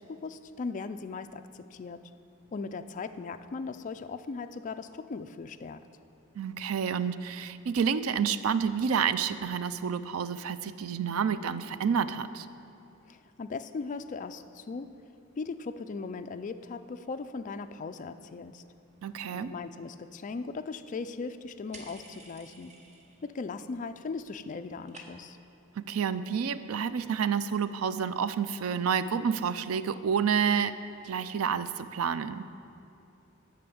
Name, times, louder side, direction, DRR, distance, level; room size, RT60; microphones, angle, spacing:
voice 1, 0.0-2.1 2.5-5.8 13.1-14.9 15.4-18.6 19.3-22.8 23.2-25.4, left 4 dB, 35° left, 9 dB, 0.3 m, -38 dB
voice 2, 6.4-12.5 19.0-19.5 25.8-30.7 31.0-32.4, right 7 dB, 75° right, 13 dB, 0.4 m, -29 dB
sound 1, 21.7-23.3 23.6-24.2 24.4-25.5, right 2 dB, 35° right, 1.0 m, -52 dB
9.0 x 6.0 x 7.8 m, 2.7 s
head